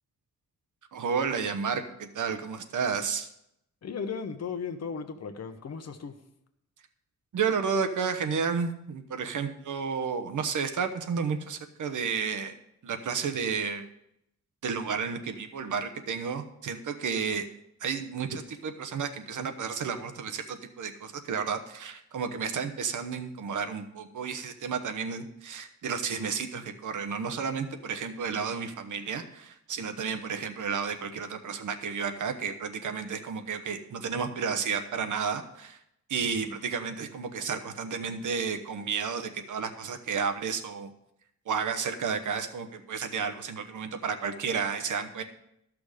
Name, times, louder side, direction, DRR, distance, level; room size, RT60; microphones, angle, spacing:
voice 1, 0.9-3.3 7.3-12.5 12.8-13.9 14.6-17.5 17.8-35.8 36.1-40.9 41.5-45.2, right 6 dB, 75° right, 7 dB, 1.0 m, -32 dB
voice 2, 3.8-6.2 36.4-36.5, left 6 dB, 55° left, 8 dB, 1.0 m, -36 dB
13.5 x 6.1 x 5.0 m, 0.78 s
wide cardioid pair, 175°, 31 cm